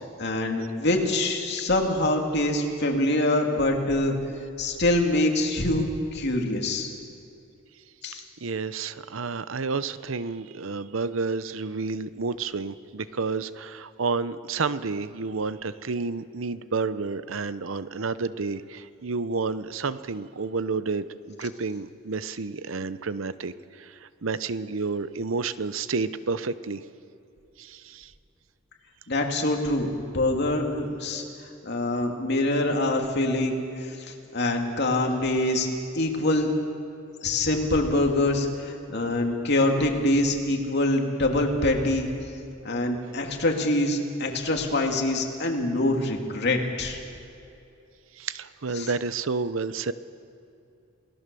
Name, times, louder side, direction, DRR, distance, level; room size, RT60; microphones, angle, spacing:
voice 1, 0.2-4.1 4.6-6.9 8.0-8.2 29.1-31.2 31.6-35.7 35.9-36.6 37.2-42.1 42.6-47.0 48.8-48.9, left 1 dB, 55° left, 2 dB, 2.7 m, -25 dB
voice 2, 8.4-26.8 27.6-28.1 48.1-49.9, right 4 dB, 75° right, 14 dB, 0.7 m, -30 dB
28.0 x 18.0 x 6.9 m, 2.7 s
head